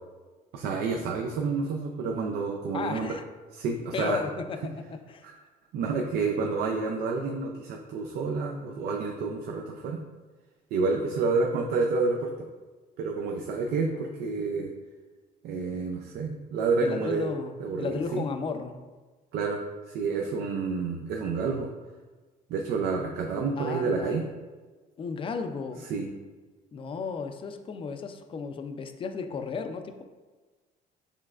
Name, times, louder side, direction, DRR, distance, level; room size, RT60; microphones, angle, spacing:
voice 1, 0.5-3.1 3.5-4.2 5.2-5.3 5.7-10.0 10.7-12.5 13.0-14.7 15.4-17.3 17.6-18.2 19.3-19.6 19.9-21.7 22.5-24.2 25.9-26.1, right 4 dB, 70° right, 2 dB, 0.5 m, -29 dB
voice 2, 2.7-3.2 3.9-5.3 13.7-14.2 16.8-18.8 23.6-24.3 25.0-25.9 26.7-30.0, left 5 dB, 30° left, 7 dB, 0.4 m, -34 dB
6.9 x 3.2 x 2.4 m, 1.3 s
cardioid pair, 110°, 17 cm